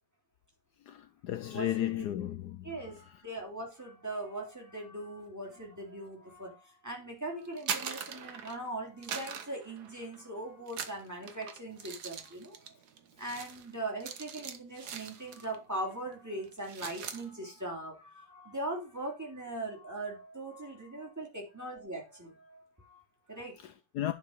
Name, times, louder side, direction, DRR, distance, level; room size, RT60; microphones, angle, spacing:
voice 1, 0.9-2.7 23.6-24.1, left 12 dB, 70° left, 1.1 m, -34 dB
voice 2, 1.4-2.1 2.6-12.8 13.2-23.6, right 1 dB, 10° right, 3.0 m, -40 dB
sound 1, 7.4-8.7 9.0-10.3 10.7-15.6 15.9-16.1 16.4-17.2, right 7 dB, 65° right, 1.5 m, -41 dB
10.5 x 5.2 x 5.1 m
omnidirectional pair, 1.9 m